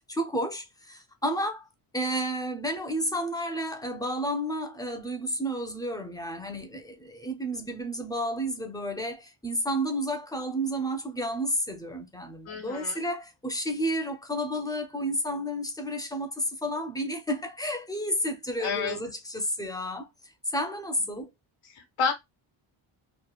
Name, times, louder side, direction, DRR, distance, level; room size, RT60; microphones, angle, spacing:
voice 1, 0.1-1.7 1.9-20.1 20.5-21.3, equal, 10° left, 0.5 m, -31 dB
voice 2, 12.5-13.0 18.6-19.0 21.6-22.1, left 5 dB, 75° left, 1.0 m, -30 dB
3.1 x 2.1 x 2.3 m
cardioid pair, 95°, 49 cm